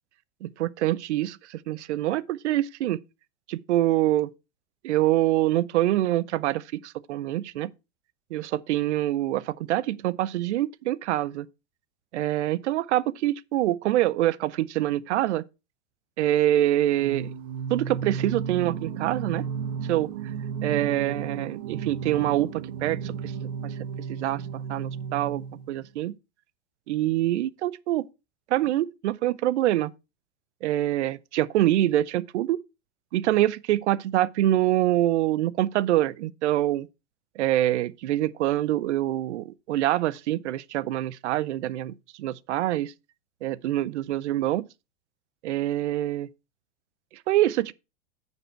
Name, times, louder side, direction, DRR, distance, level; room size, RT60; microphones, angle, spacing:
voice 1, 0.4-3.0 3.5-4.3 4.8-7.7 8.3-11.5 12.1-15.4 16.2-17.3 17.7-19.5 19.9-20.1 20.6-23.3 23.6-23.7 24.1-26.1 26.9-28.1 28.5-29.9 30.6-32.6 33.1-36.9 37.4-42.9 43.4-44.6 45.4-46.3 47.3-47.7, right 14 dB, 80° right, 0.6 m, -25 dB
Singing, 17.0-25.9, right 7 dB, 50° right, 0.9 m, -33 dB
9.5 x 5.4 x 4.3 m
hypercardioid pair, 120°, 34 cm